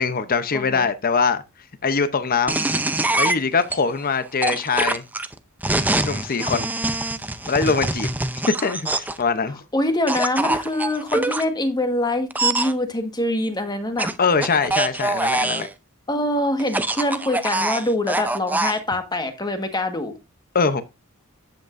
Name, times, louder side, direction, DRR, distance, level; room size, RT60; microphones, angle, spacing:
voice 1, 0.0-1.4 1.8-2.6 3.2-5.0 6.0-6.7 7.4-8.1 8.6-9.6 14.2-15.7 20.5-20.8, left 5 dB, 45° left, 0.7 m, -22 dB
voice 2, 0.5-0.9 9.7-14.1 16.1-20.1, left 1 dB, 20° left, 1.5 m, -24 dB
sound 1, 2.5-3.8 4.4-9.2 10.1-11.4 12.3-12.7 14.0-15.7 16.6-18.8, right 2 dB, 10° right, 0.6 m, -24 dB
10.5 x 8.1 x 2.6 m
head